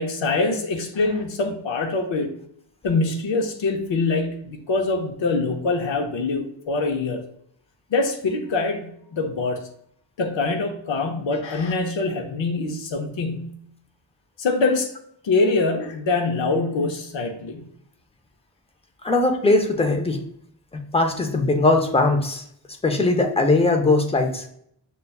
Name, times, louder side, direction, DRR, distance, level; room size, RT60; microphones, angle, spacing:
voice 1, 0.0-2.3 2.8-7.2 7.9-9.7 10.2-13.6 14.4-14.9 15.2-17.6, left 3 dB, 80° left, 3 dB, 0.7 m, -24 dB
voice 2, 19.0-20.3 20.7-22.4 22.8-24.5, left 2 dB, 15° left, 5 dB, 0.4 m, -20 dB
6.6 x 2.2 x 2.3 m, 0.68 s
wide cardioid pair, 130°, 44 cm